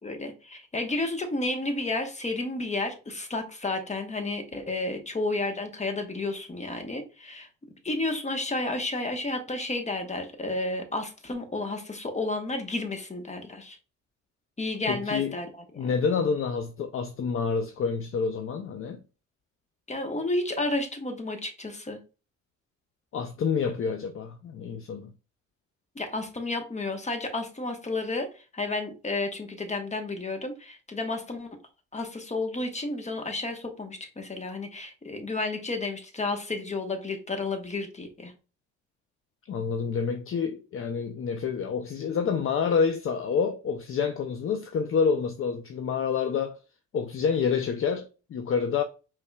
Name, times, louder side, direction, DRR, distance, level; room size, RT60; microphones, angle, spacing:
voice 1, 0.0-7.5 7.8-13.8 14.6-15.5 15.7-15.9 19.9-22.0 25.9-31.5 31.9-38.3, left 2 dB, 25° left, 1.2 m, -31 dB
voice 2, 14.9-15.4 15.8-19.0 23.1-25.1 39.5-46.6 46.9-48.8, left 6 dB, 45° left, 0.5 m, -28 dB
5.4 x 3.5 x 2.3 m
cardioid pair, 90°, 30 cm